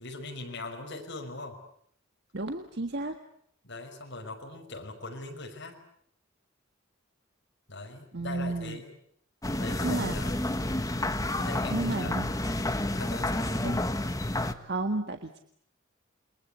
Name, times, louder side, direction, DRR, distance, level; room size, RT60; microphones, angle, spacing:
voice 1, 0.0-1.6 3.6-5.8 7.7-8.9 9.6-10.5 11.4-12.1 13.0-13.6, left 2 dB, 60° left, 3 dB, 5.7 m, -40 dB
voice 2, 2.3-3.2 8.1-8.8 9.8-10.2 11.7-12.3 13.6-13.9 14.4-15.4, right 2 dB, 55° right, 6 dB, 1.7 m, -32 dB
sound 1, 9.4-14.5, left 1 dB, 15° left, 1.4 m, -30 dB
29.0 x 22.5 x 8.3 m, 0.67 s
head